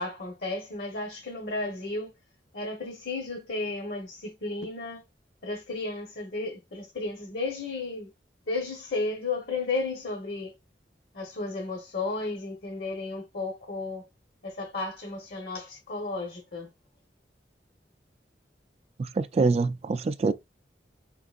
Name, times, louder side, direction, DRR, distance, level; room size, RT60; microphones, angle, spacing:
voice 1, 0.0-2.1 2.5-5.0 5.4-8.1 8.5-10.5 11.1-14.0 14.4-16.7, left 3 dB, 60° left, 1.0 m, -33 dB
voice 2, 19.0-20.3, right 3 dB, 35° right, 0.3 m, -25 dB
4.4 x 3.8 x 2.4 m
head